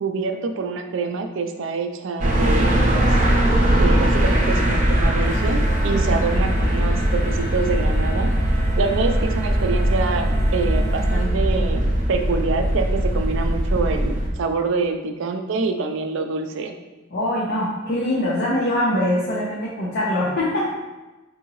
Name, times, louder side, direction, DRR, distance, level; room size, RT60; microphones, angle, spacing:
voice 1, 0.0-3.1 3.8-8.3 8.8-16.7, right 4 dB, 65° right, 5 dB, 0.4 m, -26 dB
sound 1, 2.2-14.3, right 1 dB, 40° right, 0.7 m, -20 dB
voice 2, 4.1-4.4 17.1-20.7, left 1 dB, 50° left, -7 dB, 0.7 m, -23 dB
sound 2, 5.2-11.3, right 1 dB, 85° left, 0.9 m, -36 dB
4.7 x 2.6 x 3.0 m, 1.1 s
head